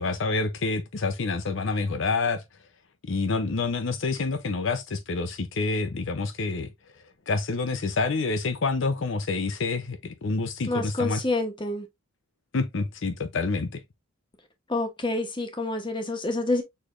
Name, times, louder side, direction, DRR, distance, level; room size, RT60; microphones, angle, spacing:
voice 1, 0.0-2.4 3.1-6.7 7.3-11.2 12.5-13.8, left 3 dB, 60° left, 0.6 m, -27 dB
voice 2, 10.7-11.9 14.7-16.6, left 2 dB, 20° left, 0.9 m, -28 dB
6.4 x 3.3 x 2.4 m
head